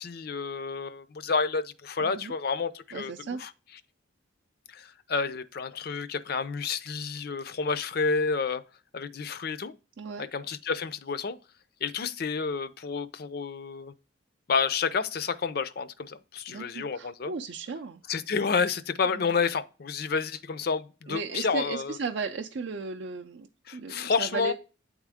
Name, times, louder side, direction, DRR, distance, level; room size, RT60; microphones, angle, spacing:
voice 1, 0.0-3.1 3.4-3.5 4.7-8.6 8.9-9.7 10.2-11.4 11.8-13.9 14.5-17.3 18.1-22.0 23.7-24.5, left 5 dB, 50° left, 0.5 m, -30 dB
voice 2, 2.0-2.3 2.9-3.4 10.0-10.3 16.5-18.0 19.1-19.3 21.1-24.5, right 4 dB, 60° right, 0.4 m, -36 dB
8.8 x 3.6 x 3.5 m
head